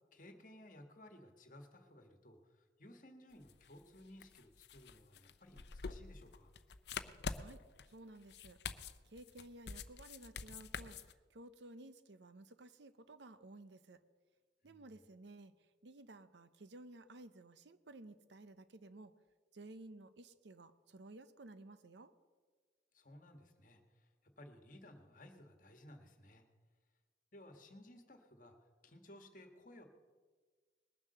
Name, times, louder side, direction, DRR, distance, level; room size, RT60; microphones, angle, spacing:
voice 1, 0.1-6.5 14.6-14.9 22.9-24.1 24.4-26.4 27.3-28.5 28.8-29.8, left 1 dB, 45° left, 5 dB, 1.6 m, -58 dB
sound 1, 3.3-11.1, left 5 dB, 65° left, 0.6 m, -47 dB
voice 2, 7.4-8.6 9.0-14.0 14.6-15.5 15.8-19.1 19.5-22.1, right 2 dB, 75° right, 13 dB, 0.7 m, -55 dB
20.5 x 7.2 x 6.7 m, 1.5 s
head